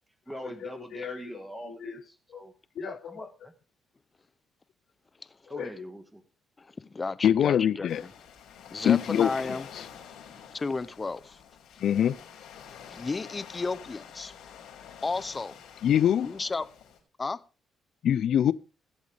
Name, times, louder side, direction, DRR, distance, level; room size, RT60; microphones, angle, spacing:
voice 1, 0.3-3.5 5.5-6.2, right 1 dB, 10° right, 1.5 m, -42 dB
voice 2, 1.6-2.0 2.3-2.4 2.8-3.0 5.5-5.7 7.2-8.0 8.9-9.9 11.8-12.2 15.8-16.3 18.0-18.5, left 9 dB, 70° left, 0.5 m, -24 dB
voice 3, 6.6-8.1 8.7-9.7 10.5-11.4 12.9-14.3 15.0-15.6 16.2-16.7 17.2-17.4, left 3 dB, 25° left, 0.8 m, -33 dB
Waves surf, 7.9-17.0, left 8 dB, 85° left, 6.4 m, -47 dB
21.0 x 8.2 x 3.4 m
cardioid pair, 90°, 0 cm